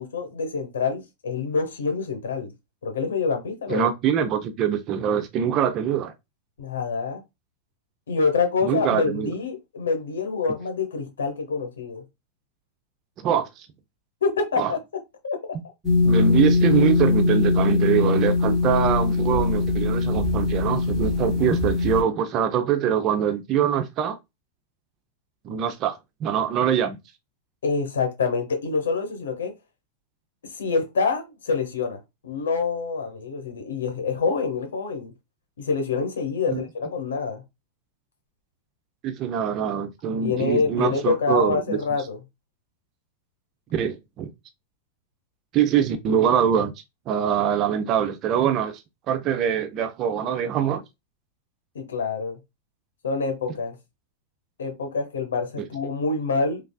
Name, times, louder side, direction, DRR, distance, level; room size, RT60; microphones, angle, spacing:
voice 1, 0.0-2.5 2.8-3.9 6.6-7.2 8.1-12.0 14.2-14.8 15.2-15.6 27.6-29.5 30.5-35.1 35.6-37.4 40.2-42.2 51.7-52.4 53.0-53.7 54.6-56.6, left 4 dB, 85° left, 0.9 m, -26 dB
voice 2, 3.7-6.1 8.6-9.3 13.2-13.7 14.6-14.7 16.0-24.2 25.4-27.0 36.5-36.6 39.0-41.8 43.7-44.3 45.5-46.7 47.1-48.8 49.1-50.8 55.6-55.7, right 8 dB, 40° right, 0.5 m, -23 dB
sound 1, 15.8-22.0, left 3 dB, 20° right, 1.1 m, -21 dB
3.2 x 2.3 x 2.2 m
hypercardioid pair, 115°, 0 cm